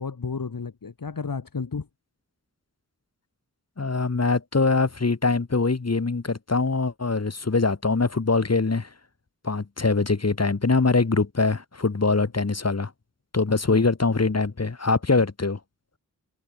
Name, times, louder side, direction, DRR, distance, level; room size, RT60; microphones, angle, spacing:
voice 1, 0.0-1.9 12.2-12.3 13.6-13.8, left 5 dB, 70° left, 1.8 m, -32 dB
voice 2, 3.8-8.9 9.4-12.9 13.3-15.6, left 3 dB, 45° left, 1.6 m, -23 dB
wide cardioid pair, 50°, 35 cm